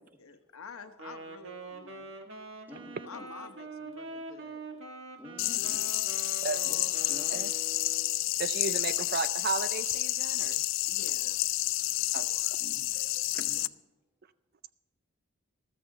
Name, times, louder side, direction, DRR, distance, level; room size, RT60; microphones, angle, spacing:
voice 1, 0.2-2.2 3.0-4.7 10.9-11.4, left 5 dB, 80° left, 8 dB, 1.1 m, -49 dB
Wind instrument woodwind instrument, 0.9-8.2, right 3 dB, 60° right, 1.5 m, -44 dB
voice 2, 2.7-3.5 5.2-6.3 6.6-6.8 7.1-7.6 12.6-12.9 13.4-13.7, left 1 dB, 10° right, 3 dB, 1.7 m, -50 dB
sound 1, 5.4-13.7, left 17 dB, 60° left, 0.4 m, -30 dB
voice 3, 8.4-10.6 12.1-12.3, right 5 dB, 45° right, 13 dB, 0.4 m, -34 dB
14.5 x 13.0 x 3.9 m, 1.1 s
head